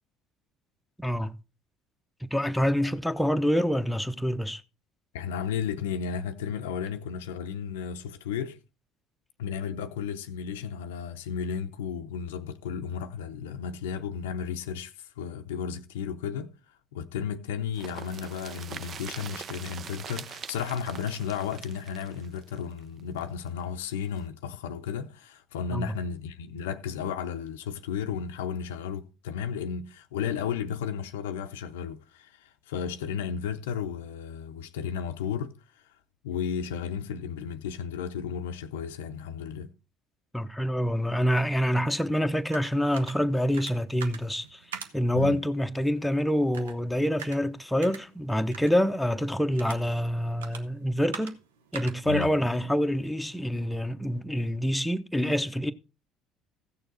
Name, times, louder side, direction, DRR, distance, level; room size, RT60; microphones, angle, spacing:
voice 1, 1.0-1.3 2.2-4.6 25.7-25.9 40.3-44.6 44.9-51.3 51.7-55.7, equal, 5° left, 0.8 m, -26 dB
voice 2, 5.1-8.6 9.4-16.5 16.9-35.5 35.8-35.9 36.2-39.7 45.1-45.4 52.0-52.3, left 7 dB, 75° left, 0.6 m, -34 dB
sound 1, 17.7-23.5 23.8-23.9 24.2-24.3, right 7 dB, 45° right, 0.6 m, -43 dB
sound 2, 41.9-53.6, right 7 dB, 80° right, 0.8 m, -46 dB
15.0 x 6.7 x 4.0 m
figure-of-eight pair, 60°, 0 cm